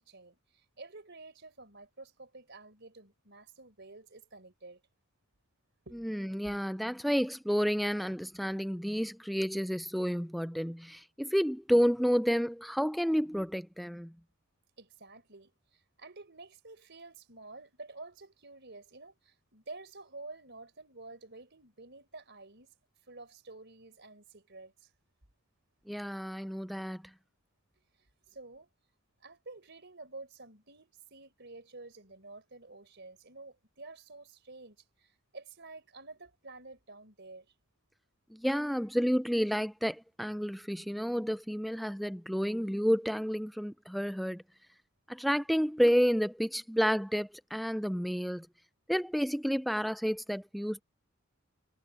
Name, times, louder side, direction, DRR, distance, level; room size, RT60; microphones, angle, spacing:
voice 1, 0.0-4.8 5.9-6.6 14.8-22.8 23.1-24.9 28.0-28.7 29.2-37.5, right 3 dB, 50° right, 4.3 m, -50 dB
voice 2, 5.9-14.1 25.9-27.0 38.3-44.4 45.1-48.5 48.9-50.8, equal, ahead, 0.3 m, -30 dB
head